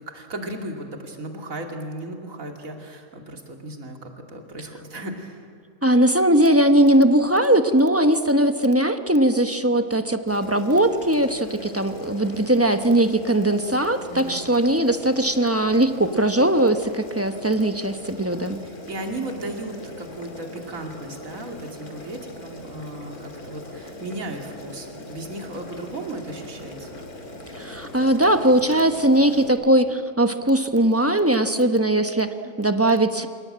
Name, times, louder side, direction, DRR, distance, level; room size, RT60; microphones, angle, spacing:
voice 1, 0.0-5.5 14.1-14.4 18.6-26.9, right 2 dB, 55° right, 3 dB, 3.0 m, -35 dB
voice 2, 5.8-18.6 27.5-33.3, right 1 dB, 10° right, 8 dB, 0.8 m, -20 dB
Boiling, 10.3-29.5, left 2 dB, 65° left, 2.9 m, -40 dB
28.0 x 18.0 x 8.8 m, 2.4 s
omnidirectional pair, 1.7 m